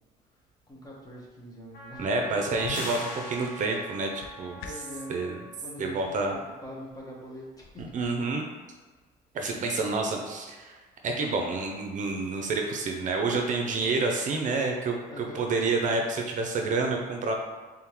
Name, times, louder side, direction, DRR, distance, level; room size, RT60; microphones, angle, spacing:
voice 1, 0.7-2.1 4.6-5.2 5.6-7.9 13.7-13.9 15.1-15.4, equal, 20° left, -3 dB, 1.1 m, -43 dB
Wind instrument woodwind instrument, 1.7-5.6, right 1 dB, 65° left, 1.0 m, -44 dB
voice 2, 2.0-4.6 5.1-5.4 5.8-6.3 7.8-8.4 9.3-10.8 11.0-17.3, right 3 dB, 50° right, 2 dB, 0.6 m, -28 dB
sound 1, 2.6-5.0, left 6 dB, 85° left, 0.5 m, -45 dB
sound 2, 2.7-4.1, left 1 dB, 50° left, 1.2 m, -39 dB
3.7 x 3.7 x 3.0 m, 1.3 s
cardioid pair, 110°, 17 cm